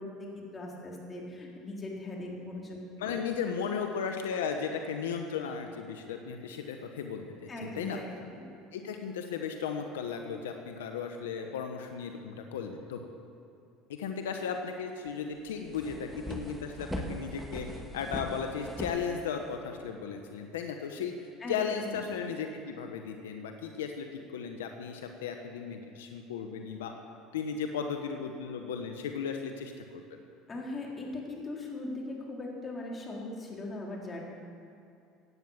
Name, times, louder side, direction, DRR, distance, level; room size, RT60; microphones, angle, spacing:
voice 1, 0.0-3.2 7.5-8.1 8.3-8.4 21.4-22.0 30.5-34.2, left 2 dB, 25° left, -2 dB, 3.9 m, -40 dB
voice 2, 3.0-8.0 8.7-13.0 14.0-21.1 21.5-26.9 27.3-30.2, left 6 dB, 90° left, 5 dB, 1.1 m, -36 dB
sound 1, 15.1-15.2 15.5-19.7, equal, ahead, 1.9 m, -40 dB
16.5 x 9.4 x 7.3 m, 2.6 s
supercardioid pair, 90°, 0 cm